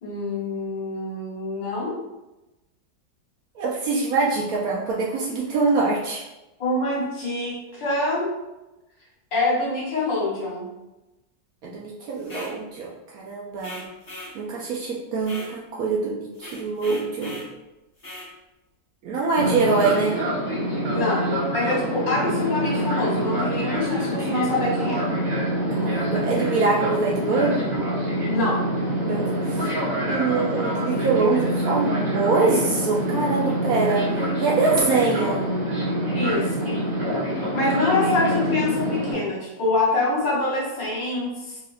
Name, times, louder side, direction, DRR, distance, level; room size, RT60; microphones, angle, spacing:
voice 1, 0.0-1.9 6.6-8.3 9.3-10.7 20.9-25.0 28.3-28.6 36.1-36.8 37.3-41.6, left 2 dB, 75° left, -5 dB, 2.0 m, -25 dB
voice 2, 3.5-6.2 11.6-13.9 14.3-17.5 19.0-20.2 25.8-27.7 29.0-29.7 30.0-35.5, right 4 dB, 70° right, -3 dB, 0.9 m, -24 dB
sound 1, 12.2-12.6 13.6-14.4 15.2-15.5 16.3-17.5 18.0-18.3, left 1 dB, 35° left, 1.2 m, -39 dB
Fixed-wing aircraft airplane, 19.4-39.1, equal, 30° right, 0.8 m, -26 dB
3.5 x 3.5 x 2.3 m, 1.0 s
omnidirectional pair, 1.9 m